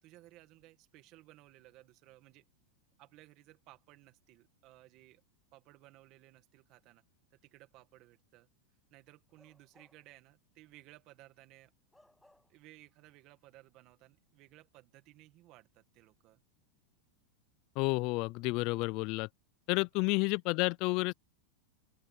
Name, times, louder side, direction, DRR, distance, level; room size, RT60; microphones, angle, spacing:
voice 1, 0.0-2.4 3.0-5.2 5.5-7.0 7.3-8.5 8.9-11.7 12.5-16.4 20.1-20.2, right 17 dB, 40° right, 1.9 m, -59 dB
Bark / Livestock farm animals working animals, 9.3-10.2 10.6-10.8 11.9-12.7 13.0-13.2, left 1 dB, 5° left, 7.1 m, -67 dB
voice 2, 17.8-19.3 19.7-21.1, left 25 dB, 45° left, 0.4 m, -30 dB
open air
supercardioid pair, 155°, 0 cm